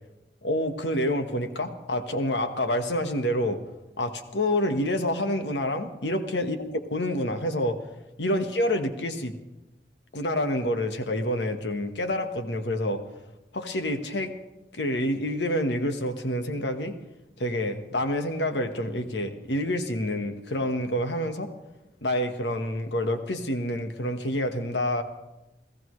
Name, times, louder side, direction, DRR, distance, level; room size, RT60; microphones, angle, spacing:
voice 1, 0.4-3.6 4.0-7.8 8.2-9.4 10.1-13.0 13.5-14.3 14.7-17.0 17.4-21.5 22.0-25.0, left 1 dB, 85° left, 7 dB, 1.4 m, -27 dB
29.5 x 15.0 x 3.2 m, 1.0 s
head